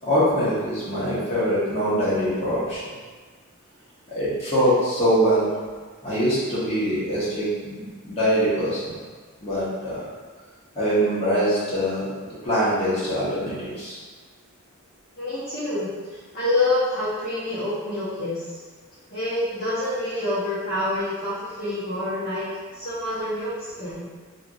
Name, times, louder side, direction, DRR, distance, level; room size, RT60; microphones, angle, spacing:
voice 1, 0.0-2.8 4.1-5.5 6.0-8.9 9.4-10.0 10.7-13.9, equal, 30° left, -10 dB, 1.3 m, -23 dB
voice 2, 15.2-15.9 16.3-18.4 19.1-22.4 22.7-23.5 23.8-24.1, left 2 dB, 45° left, -13 dB, 1.0 m, -26 dB
3.3 x 2.9 x 2.5 m, 1.5 s
head